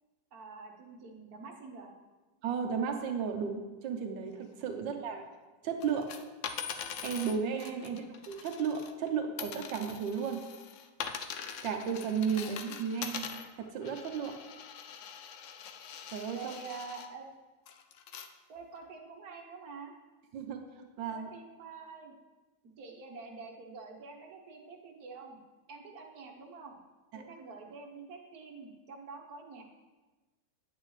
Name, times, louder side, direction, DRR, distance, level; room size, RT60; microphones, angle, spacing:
voice 1, 0.3-1.9 4.7-4.9 7.8-8.0 12.3-12.6 16.3-17.3 18.5-19.9 21.1-22.1 22.8-25.4 25.7-26.8 27.1-29.6, right 4 dB, 60° right, 1 dB, 1.5 m, -47 dB
voice 2, 2.4-5.3 5.6-6.1 7.0-10.4 11.6-13.3 13.6-14.3 16.1-16.6 20.3-21.3 27.1-27.2, right 6 dB, 90° right, 4 dB, 1.4 m, -34 dB
sound 1, 5.8-9.1 9.4-17.1 17.7-18.3 18.8-18.9, left 7 dB, 90° left, 0.6 m, -43 dB
9.9 x 8.5 x 3.2 m, 1.2 s
omnidirectional pair, 2.0 m